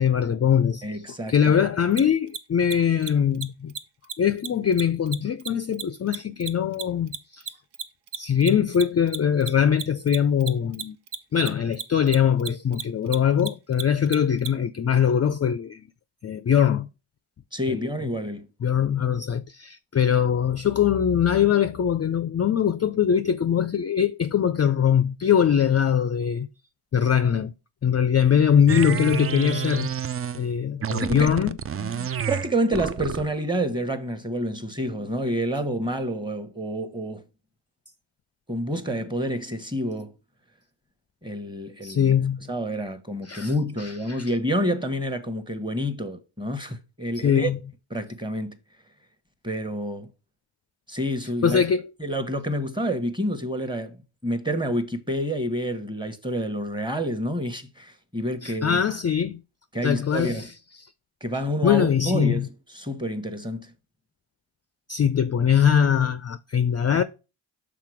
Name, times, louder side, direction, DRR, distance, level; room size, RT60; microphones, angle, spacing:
voice 1, 0.0-0.9 1.3-3.7 4.2-7.4 8.2-11.0 11.3-15.8 16.2-16.9 17.7-17.9 18.6-26.5 26.9-27.5 27.8-29.9 30.3-31.6 41.8-42.4 43.3-43.5 44.1-44.3 47.2-47.6 51.4-51.8 58.4-59.4 59.8-60.5 61.6-62.5 64.9-67.0, left 8 dB, 35° left, 0.4 m, -22 dB
voice 2, 0.8-1.5 17.5-18.5 31.0-31.3 31.8-37.2 38.5-40.1 41.2-42.2 42.5-47.5 47.9-48.5 49.4-50.1 50.9-51.6 52.0-58.8 59.7-60.5 61.2-63.7, equal, 10° right, 1.1 m, -28 dB
Mechanisms, 1.9-2.0 2.3-2.4 2.6-2.7 3.0-3.1 3.3-3.4 3.7-3.8 4.0-4.1 4.4-7.2 7.4-14.5, right 8 dB, 55° right, 0.8 m, -32 dB
sound 1, 28.7-30.5 30.8-33.4, right 8 dB, 30° right, 0.4 m, -29 dB
5.8 x 3.8 x 4.9 m
cardioid pair, 50°, 49 cm